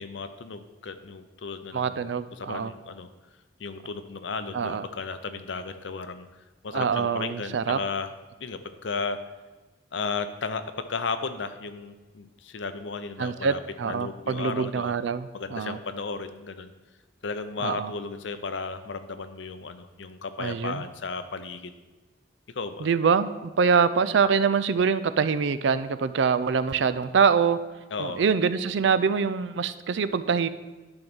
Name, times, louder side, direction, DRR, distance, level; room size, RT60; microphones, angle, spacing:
voice 1, 0.0-3.1 3.6-6.3 6.6-8.1 8.4-9.2 9.9-13.6 13.8-14.9 15.3-16.7 17.2-21.7 22.5-22.9 27.9-28.2, left 4 dB, 75° left, 10 dB, 0.6 m, -34 dB
voice 2, 1.7-2.7 4.5-4.8 6.7-7.8 13.2-15.8 17.6-17.9 20.4-20.8 22.8-27.6 28.0-30.5, right 6 dB, 75° right, 13 dB, 0.4 m, -24 dB
10.5 x 4.0 x 6.1 m, 1.2 s
head